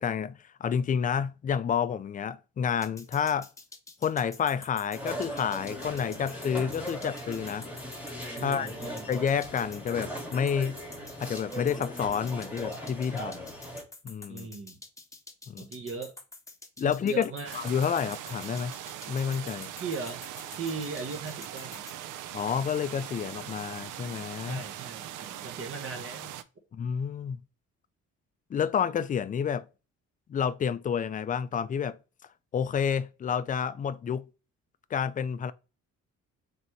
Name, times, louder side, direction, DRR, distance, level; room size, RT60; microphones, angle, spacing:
voice 1, 0.0-3.5 4.0-7.7 8.3-8.7 9.1-10.8 11.2-13.5 14.0-14.5 15.5-15.7 16.8-18.8 19.1-19.7 22.3-24.6 26.7-27.4 28.5-29.7 30.3-32.0 32.5-34.3 34.9-35.5, left 7 dB, 30° left, 0.4 m, -29 dB
sound 1, 2.8-22.0, left 3 dB, 10° left, 0.8 m, -48 dB
sound 2, 4.9-13.8, equal, 5° right, 1.8 m, -39 dB
voice 2, 8.3-9.1 14.3-14.8 15.6-16.1 16.8-17.6 19.8-20.2 20.6-21.8 24.4-26.3, right 4 dB, 45° right, 1.0 m, -38 dB
sound 3, 17.5-26.4, right 11 dB, 85° right, 0.5 m, -41 dB
4.0 x 3.4 x 3.0 m
cardioid pair, 90°, 30 cm